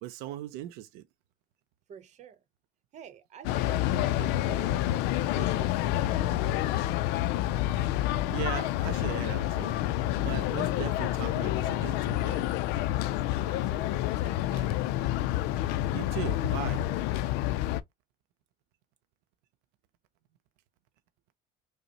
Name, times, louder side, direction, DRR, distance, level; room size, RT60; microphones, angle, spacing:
voice 1, 0.0-1.1 7.9-9.8 10.1-12.5 15.9-16.9, right 13 dB, 90° right, 0.4 m, -38 dB
voice 2, 1.9-2.4 2.9-4.9 5.2-6.8 13.4-14.8, right 7 dB, 45° right, 0.8 m, -48 dB
sound 1, 3.4-17.8, left 14 dB, 85° left, 0.4 m, -28 dB
5.1 x 2.1 x 2.7 m
cardioid pair, 130°, 17 cm